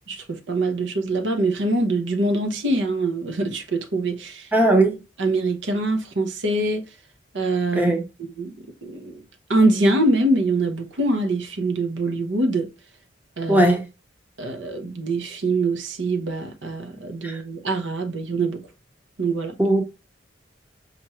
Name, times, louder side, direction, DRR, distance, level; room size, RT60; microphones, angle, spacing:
voice 1, 0.1-4.5 5.2-6.8 7.3-7.9 8.4-9.2 9.5-12.7 13.4-13.7 14.4-18.6 19.2-19.6, right 2 dB, 75° right, 0.8 m, -24 dB
voice 2, 4.5-5.0 7.7-8.0 13.5-13.8 17.2-17.4 19.6-19.8, right 1 dB, 10° right, 0.7 m, -18 dB
5.6 x 2.5 x 3.0 m
head